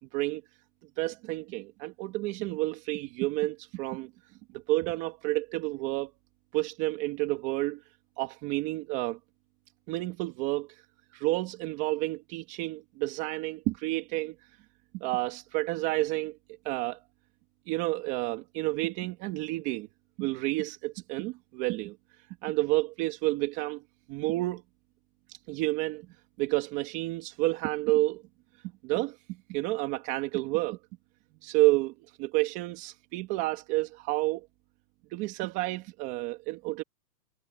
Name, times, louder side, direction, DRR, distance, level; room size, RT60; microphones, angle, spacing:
voice 1, 1.0-4.1 4.5-6.1 6.5-7.8 8.2-9.2 9.9-10.7 11.1-14.3 14.9-16.4 16.6-17.0 17.7-19.9 20.2-22.0 22.4-23.8 24.1-24.6 25.3-26.1 26.4-28.2 28.8-29.2 29.5-30.8 31.4-34.5 35.1-36.8, right 20 dB, 25° right, 2.5 m, -30 dB
hypercardioid pair, 170°, 49 cm